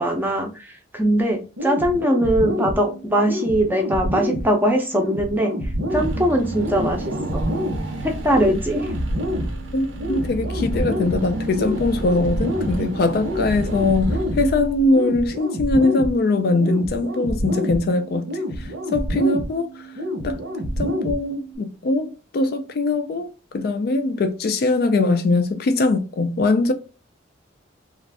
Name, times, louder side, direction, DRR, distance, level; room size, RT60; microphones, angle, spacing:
voice 1, 0.0-5.5 5.9-7.4 8.0-8.8, right 1 dB, 10° right, 0.5 m, -21 dB
sound 1, 1.6-21.6, equal, 90° right, 1.0 m, -28 dB
Car / Engine, 5.9-15.1, right 1 dB, 65° right, 0.6 m, -30 dB
voice 2, 9.7-18.3 18.6-19.7 20.2-20.4 20.8-23.3 23.5-26.7, left 2 dB, 50° left, 0.3 m, -21 dB
2.4 x 2.4 x 3.3 m
head